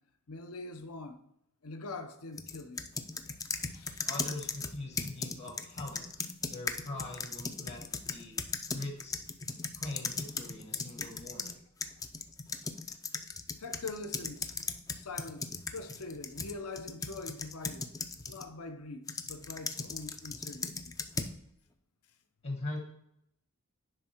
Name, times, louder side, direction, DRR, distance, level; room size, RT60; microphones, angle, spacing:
voice 1, 0.3-1.2 1.6-2.9 3.6-4.1 13.6-14.5 14.9-17.9 18.2-20.7, left 3 dB, 75° left, 0.8 m, -43 dB
sound 1, 2.4-11.5 11.8-18.5 19.1-21.4, left 4 dB, 15° left, 0.4 m, -38 dB
voice 2, 4.0-6.1 6.4-7.8 8.1-8.4 8.7-9.2 9.7-11.6 22.4-22.8, left 2 dB, 50° left, 1.2 m, -41 dB
9.9 x 3.5 x 4.4 m
head